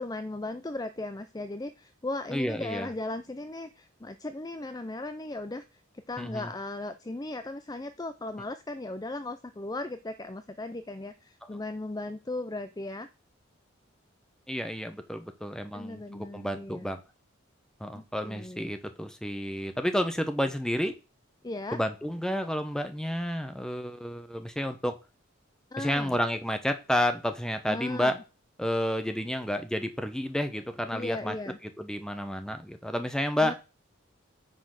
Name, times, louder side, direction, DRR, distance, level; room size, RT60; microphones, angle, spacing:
voice 1, 0.0-5.8 6.1-13.1 15.7-16.9 17.9-18.7 21.4-21.8 25.7-26.2 27.7-28.2 30.9-31.6 33.4-33.5, left 2 dB, 20° left, 11 dB, 0.5 m, -37 dB
voice 2, 2.3-2.9 6.2-6.5 14.5-17.0 17.8-21.0 21.7-25.0 25.8-28.2 28.6-31.3 31.6-33.5, equal, 5° left, 8 dB, 1.0 m, -30 dB
9.5 x 4.3 x 6.5 m, 0.30 s
head